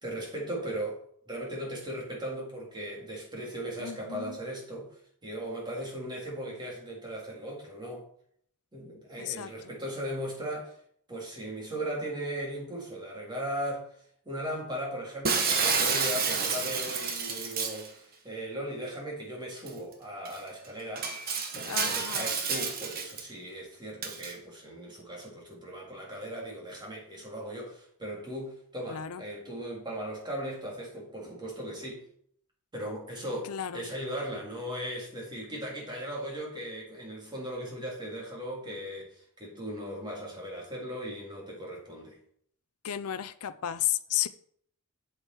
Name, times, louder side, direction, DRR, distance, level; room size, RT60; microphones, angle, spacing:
voice 1, 0.0-8.1 8.7-10.7 11.1-13.9 14.3-21.1 21.5-32.0 32.7-42.2, right 1 dB, 20° right, -3 dB, 3.5 m, -38 dB
voice 2, 3.8-4.4 9.2-9.5 21.3-21.4 21.7-22.3 28.9-29.2 33.5-33.8 42.8-44.3, left 12 dB, 75° left, 13 dB, 0.5 m, -33 dB
Shatter, 15.2-17.9 19.7-19.8 20.2-20.4 21.0-23.2 24.0-24.3, right 5 dB, 45° right, 1.2 m, -29 dB
8.2 x 8.0 x 4.5 m, 0.63 s
head